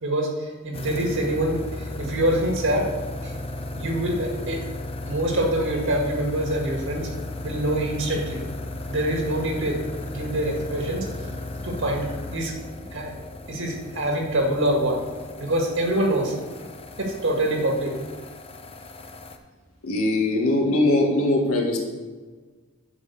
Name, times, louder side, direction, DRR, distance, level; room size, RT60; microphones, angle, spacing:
voice 1, 0.0-2.9 3.2-3.3 3.8-4.6 5.1-7.1 7.4-8.4 8.9-9.8 10.1-11.1 11.6-12.6 12.9-13.1 13.5-15.0 15.4-16.4 17.0-18.0, right 1 dB, 60° right, 2 dB, 2.0 m, -25 dB
sound 1, 0.7-19.4, left 2 dB, 25° left, 0.8 m, -35 dB
voice 2, 19.8-21.8, left 2 dB, 75° left, 0 dB, 2.1 m, -21 dB
11.0 x 5.7 x 7.0 m, 1.4 s
head